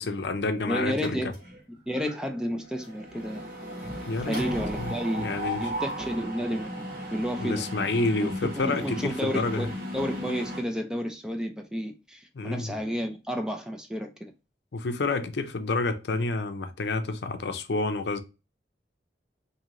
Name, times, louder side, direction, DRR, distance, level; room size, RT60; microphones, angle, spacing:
voice 1, 0.0-1.2 4.1-4.4 4.8-5.7 7.4-9.7 12.3-12.7 14.7-18.2, left 3 dB, 75° left, 0.5 m, -29 dB
voice 2, 0.7-1.4 1.9-3.4 4.3-5.3 5.6-7.6 8.2-14.3, equal, 5° right, 0.4 m, -31 dB
Mechanisms, 1.0-1.6 2.0-2.2 2.4-10.6, equal, 55° right, 1.2 m, -36 dB
3.1 x 2.7 x 3.8 m
head